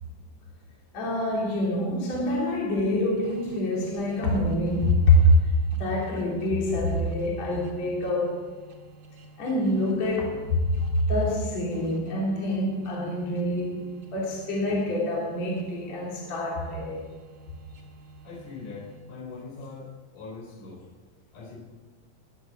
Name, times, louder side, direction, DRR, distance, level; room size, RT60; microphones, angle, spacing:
voice 1, 0.9-5.3 5.7-8.4 9.4-10.4 11.1-13.9 14.1-17.0, left 1 dB, 50° left, 4.1 m, -25 dB
sound 1, 3.2-19.3, right 2 dB, 50° right, 2.6 m, -50 dB
voice 2, 18.2-20.8 21.3-21.6, left 4 dB, 65° left, 5.4 m, -41 dB
21.0 x 8.4 x 7.4 m
omnidirectional pair, 3.9 m